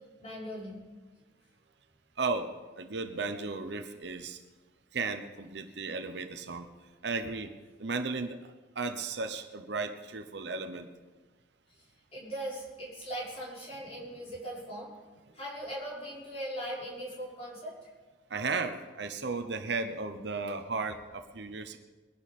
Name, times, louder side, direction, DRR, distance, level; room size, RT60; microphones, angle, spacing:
voice 1, 0.2-0.8 12.1-14.9 15.3-17.9, equal, 35° left, -7 dB, 5.7 m, -39 dB
voice 2, 2.2-4.4 4.9-6.7 7.0-7.5 7.8-8.4 8.8-10.9 18.3-21.8, right 4 dB, 70° right, 7 dB, 0.9 m, -35 dB
22.5 x 11.0 x 4.3 m, 1.3 s
head